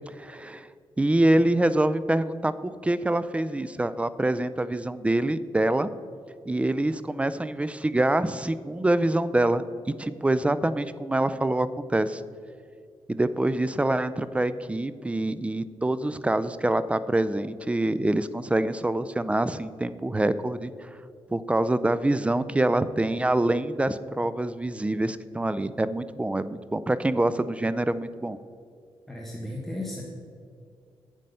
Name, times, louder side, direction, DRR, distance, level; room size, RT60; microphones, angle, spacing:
voice 1, 0.1-0.7 1.0-5.9 6.5-9.6 10.0-12.2 13.1-20.7 21.3-28.4, right 1 dB, 15° right, 14 dB, 0.4 m, -25 dB
voice 2, 29.1-30.0, left 1 dB, ahead, -2 dB, 1.4 m, -34 dB
8.9 x 7.6 x 5.5 m, 2.3 s
cardioid pair, 85°, 9 cm